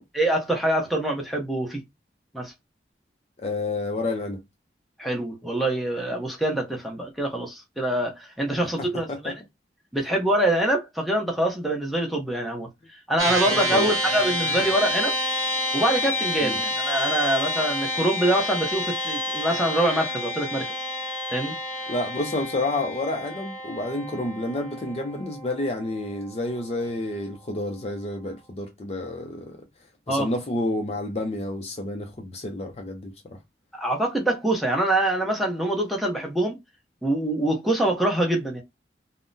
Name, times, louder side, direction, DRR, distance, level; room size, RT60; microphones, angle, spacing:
voice 1, 0.1-1.8 2.3-2.5 5.0-9.3 9.9-12.7 13.1-15.1 15.7-20.6 21.3-21.6 30.1-30.3 33.7-36.6 37.0-38.6, right 1 dB, ahead, 0.7 m, -25 dB
voice 2, 3.4-4.4 8.8-9.3 13.7-13.9 16.4-16.6 21.9-29.6 30.1-33.4, left 2 dB, 35° left, 0.4 m, -30 dB
sound 1, 13.2-26.7, left 1 dB, 20° right, 1.1 m, -29 dB
3.6 x 2.0 x 2.6 m
head